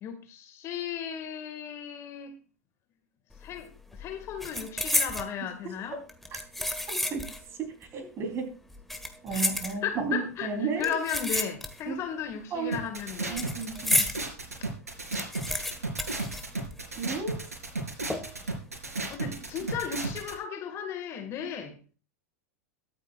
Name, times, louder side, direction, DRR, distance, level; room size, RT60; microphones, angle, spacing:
voice 1, 0.0-2.3 3.4-6.0 9.3-9.4 9.8-10.5 10.8-13.5 19.1-21.7, left 8 dB, 35° left, 1.9 m, -35 dB
sound 1, 3.3-3.6 3.9-5.3 6.1-7.5 7.8-7.9 8.7-10.1 10.8-12.0 12.3-14.2 14.6-14.7 14.9-17.0 17.3-17.4 18.1-18.5 18.9-19.2, left 1 dB, ahead, 1.5 m, -31 dB
voice 2, 7.6-8.6 9.2-11.0 11.9-12.0 12.5-12.9 13.3-14.0 17.0-17.4 19.2-19.3, right 4 dB, 30° right, 3.6 m, -33 dB
sound 2, 12.7-20.3, right 2 dB, 80° right, 3.2 m, -34 dB
22.5 x 8.9 x 2.4 m
figure-of-eight pair, 95°, 8 cm